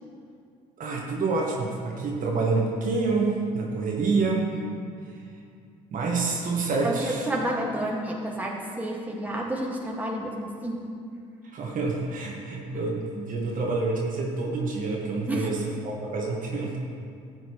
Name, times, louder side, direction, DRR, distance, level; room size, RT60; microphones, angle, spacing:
voice 1, 0.8-4.6 5.9-7.3 11.5-16.8, right 3 dB, 55° right, -2 dB, 1.7 m, -27 dB
voice 2, 6.8-10.8 15.3-15.5, right 1 dB, 10° right, -2 dB, 1.9 m, -30 dB
14.0 x 7.7 x 3.2 m, 2.3 s
hypercardioid pair, 65°, 17 cm